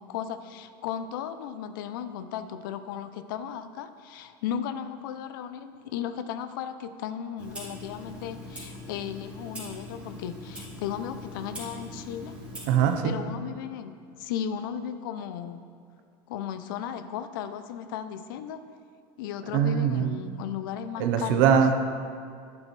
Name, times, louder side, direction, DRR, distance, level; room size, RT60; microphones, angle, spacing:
voice 1, 0.0-12.3 13.0-15.6 16.3-18.6 19.2-21.5, left 9 dB, 90° left, 11 dB, 0.6 m, -35 dB
Clock, 7.4-13.0, left 1 dB, 10° right, 2.9 m, -42 dB
voice 2, 12.7-13.2 19.5-20.1 21.0-21.7, right 8 dB, 75° right, 6 dB, 1.0 m, -22 dB
11.5 x 9.7 x 3.3 m, 2.3 s
supercardioid pair, 135°, 11 cm